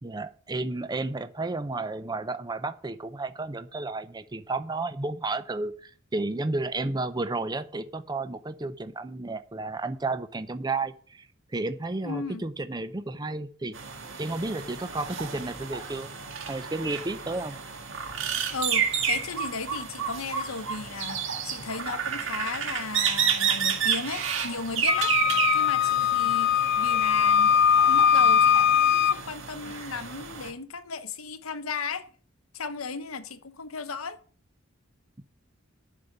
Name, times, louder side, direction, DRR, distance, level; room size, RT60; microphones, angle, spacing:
voice 1, 0.0-11.3 11.5-13.7 14.2-16.1 16.5-17.6 35.2-35.3, right 2 dB, 20° right, 0.6 m, -32 dB
voice 2, 12.0-12.4 18.5-25.1 25.5-27.6 27.9-32.1 32.5-34.2, left 4 dB, 90° left, 1.0 m, -35 dB
sound 1, 13.7-30.5, right 7 dB, 65° right, 1.7 m, -31 dB
Wind instrument woodwind instrument, 24.9-29.2, left 8 dB, 55° left, 0.4 m, -21 dB
11.0 x 5.2 x 7.9 m
head